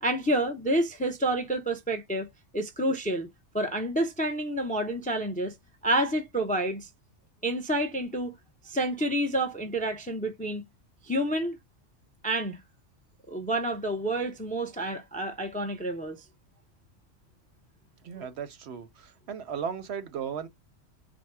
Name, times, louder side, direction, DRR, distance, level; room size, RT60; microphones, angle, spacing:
voice 1, 0.0-2.3 2.5-3.3 3.5-5.5 5.8-6.9 7.4-8.3 8.6-10.6 11.0-11.6 12.2-12.6 13.3-16.2 18.2-18.3, right 1 dB, 10° left, 0.4 m, -29 dB
voice 2, 18.0-20.5, right 7 dB, 65° right, 0.8 m, -36 dB
4.3 x 2.1 x 4.6 m
omnidirectional pair, 1.3 m